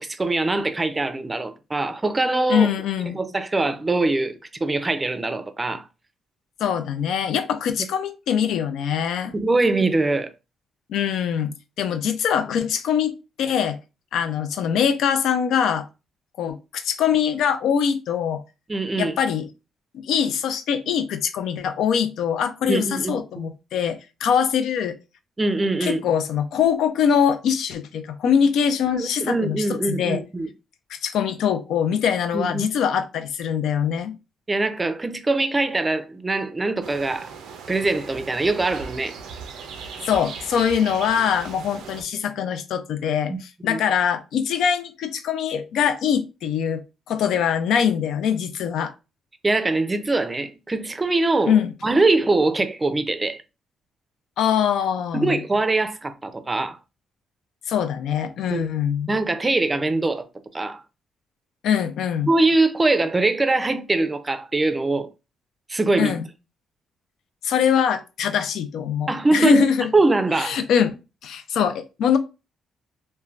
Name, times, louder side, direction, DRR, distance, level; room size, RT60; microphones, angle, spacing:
voice 1, 0.0-2.7 3.1-5.9 9.3-10.3 18.7-19.2 22.6-23.5 25.4-26.0 28.9-30.5 32.3-32.7 34.5-37.3 37.7-39.2 43.3-43.4 43.6-43.8 49.4-53.4 55.1-56.8 58.5-58.6 59.1-60.2 60.5-60.8 62.3-65.1 65.7-66.2 69.1-69.6 69.9-70.6, right 2 dB, 20° right, 0.4 m, -22 dB
voice 2, 2.5-3.2 6.6-9.3 10.9-13.8 14.1-15.8 16.4-18.4 19.0-19.5 19.9-25.0 25.8-30.2 30.9-34.1 40.1-46.8 47.1-48.9 51.5-51.7 54.4-55.4 57.7-59.1 61.6-62.3 66.0-66.3 67.4-69.9 70.3-72.2, left 8 dB, 80° left, 0.4 m, -23 dB
sound 1, 36.8-42.0, right 5 dB, 85° right, 0.4 m, -38 dB
3.1 x 2.1 x 2.4 m
cardioid pair, 90°, 0 cm